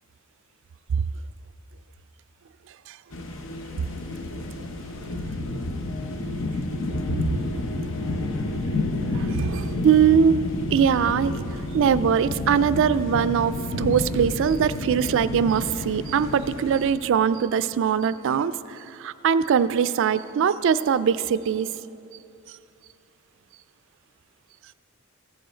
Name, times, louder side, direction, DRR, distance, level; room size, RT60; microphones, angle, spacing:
sound 1, 3.1-16.9, left 2 dB, 65° left, 0.7 m, -30 dB
voice 1, 9.1-11.4 11.7-21.7, right 7 dB, 60° right, 14 dB, 0.3 m, -22 dB
14.5 x 7.6 x 4.4 m, 2.7 s
head